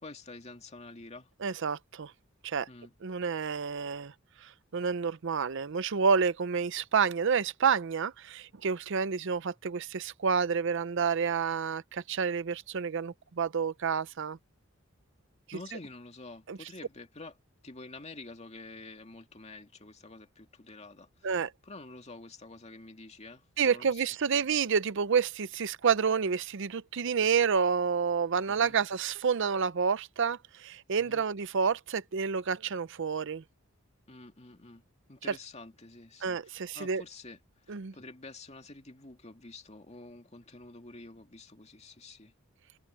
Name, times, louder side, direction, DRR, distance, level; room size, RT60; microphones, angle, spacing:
voice 1, 0.0-1.3 2.7-2.9 15.5-17.4 17.6-21.4 21.6-24.5 28.5-28.8 31.0-31.3 34.1-34.8 35.1-42.3, left 2 dB, 35° left, 2.3 m, -48 dB
voice 2, 1.4-2.1 2.4-2.7 3.0-4.1 4.4-14.4 16.5-16.6 21.2-21.5 23.6-33.4 36.2-37.0 37.7-37.9, right 6 dB, 65° right, 0.6 m, -29 dB
head